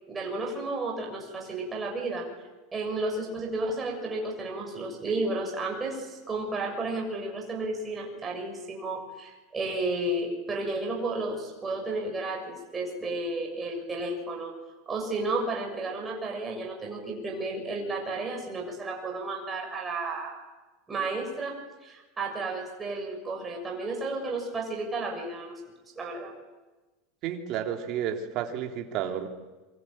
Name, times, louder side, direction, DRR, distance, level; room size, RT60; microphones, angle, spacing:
voice 1, 0.1-2.2 2.7-14.5 14.9-20.3 20.9-21.6 21.8-25.5 25.9-26.3, right 2 dB, 15° right, 0 dB, 6.8 m, -32 dB
voice 2, 27.2-29.3, right 9 dB, 40° right, 3 dB, 3.3 m, -31 dB
26.5 x 25.0 x 9.0 m, 1.2 s
supercardioid pair, 165°, 0 cm